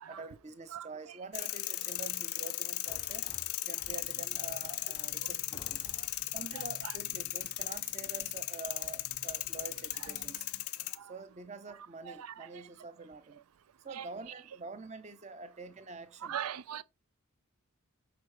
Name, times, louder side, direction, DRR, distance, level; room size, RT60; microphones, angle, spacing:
voice 1, 0.1-3.3 3.6-5.9 6.3-10.5 11.0-13.4 13.8-16.4, right 3 dB, 30° right, 0.7 m, -46 dB
sound 1, 1.3-11.0, left 17 dB, 85° left, 0.5 m, -37 dB
sound 2, 2.8-4.4 5.0-5.1 5.5-6.4, left 3 dB, 20° left, 0.4 m, -53 dB
sound 3, 3.8-10.6, right 2 dB, 75° right, 1.0 m, -57 dB
voice 2, 6.5-7.0 10.0-10.1 12.1-12.5 13.9-14.1 16.2-16.8, right 9 dB, 90° right, 0.4 m, -40 dB
5.9 x 4.3 x 4.8 m
head